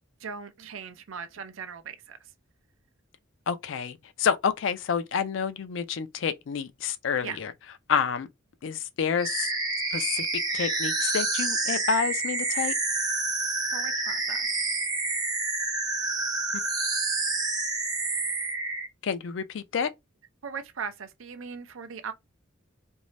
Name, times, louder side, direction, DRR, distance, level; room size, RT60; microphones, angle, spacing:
voice 1, 0.2-2.2 7.2-7.4 13.7-14.5 20.4-22.1, right 6 dB, 80° right, 0.5 m, -38 dB
voice 2, 3.5-7.5 7.9-8.3 8.6-9.5 9.9-10.3 10.5-12.7 19.0-19.9, left 6 dB, 65° left, 0.4 m, -28 dB
sound 1, 9.2-18.9, right 3 dB, 20° right, 0.6 m, -28 dB
2.6 x 2.0 x 3.1 m
head